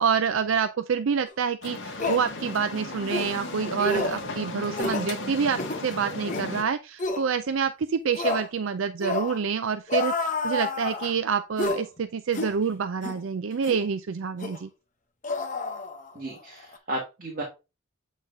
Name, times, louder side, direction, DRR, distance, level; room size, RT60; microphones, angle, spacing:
voice 1, 0.0-14.7, right 6 dB, 60° right, 0.4 m, -27 dB
sound 1, 1.3-1.4 2.0-2.3 3.1-3.3 3.8-4.2 4.7-5.1 5.5-5.8 6.3-6.5 7.0-7.2 8.1-8.5 9.0-9.4 9.9-11.1 11.6-11.8 12.3-12.6 13.0-13.2 13.6-13.8 14.4-14.6 15.2-16.3 16.6-16.8, left 3 dB, 35° left, 0.9 m, -29 dB
sound 2, 1.6-6.6, left 2 dB, 55° left, 1.5 m, -36 dB
voice 2, 16.2-17.4, right 1 dB, 40° right, 1.8 m, -34 dB
8.1 x 4.0 x 3.4 m
head